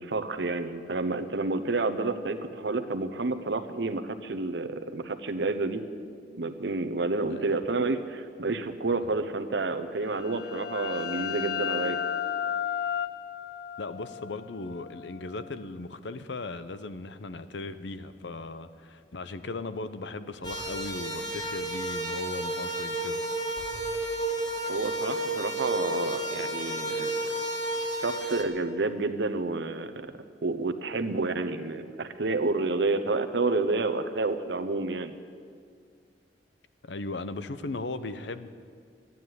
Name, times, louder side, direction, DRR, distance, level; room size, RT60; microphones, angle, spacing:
voice 1, 0.0-5.8 6.4-12.0 24.7-27.4 28.0-30.1 30.4-35.1, right 3 dB, 75° right, 10 dB, 0.9 m, -29 dB
sound 1, 10.1-15.6, left 9 dB, 60° left, 0.4 m, -34 dB
voice 2, 13.8-23.2 36.8-38.5, left 3 dB, 80° left, 12 dB, 0.7 m, -37 dB
sound 2, 20.4-28.4, right 1 dB, 25° left, 1.6 m, -32 dB
12.5 x 9.5 x 9.5 m, 2.1 s
head